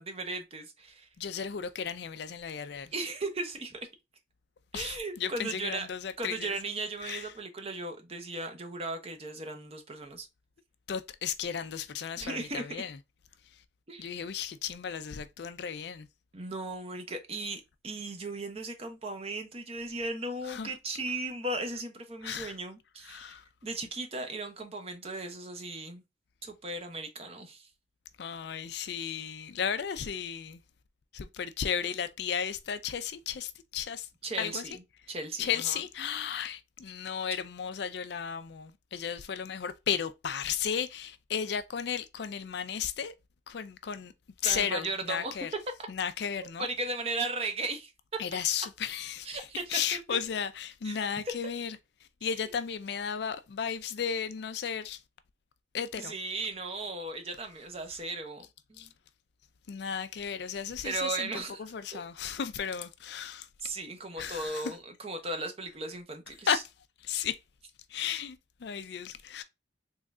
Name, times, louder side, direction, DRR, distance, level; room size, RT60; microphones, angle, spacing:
voice 1, 0.0-1.1 2.9-3.8 4.7-5.9 6.2-10.3 12.2-12.7 13.9-14.1 16.3-23.4 23.6-26.0 26.4-27.7 34.2-34.8 35.1-35.8 44.4-45.4 46.6-47.9 49.2-49.6 49.9-50.0 50.8-51.1 56.0-58.4 58.7-58.9 60.8-61.7 61.9-62.0 63.6-66.6, right 2 dB, 30° right, 0.7 m, -36 dB
voice 2, 1.2-2.9 4.7-6.5 7.0-7.3 10.9-13.0 13.5-13.6 14.0-16.1 20.4-20.7 22.2-22.6 23.0-23.4 28.2-30.6 31.1-34.1 34.4-34.7 35.4-43.1 43.5-44.1 44.4-45.5 45.9-46.7 48.2-51.8 52.2-55.0 55.7-56.1 58.8-58.9 59.7-63.5 64.2-64.7 66.5-66.7 67.0-67.4 67.9-69.4, left 7 dB, 60° left, 0.4 m, -34 dB
3.7 x 3.1 x 2.3 m
head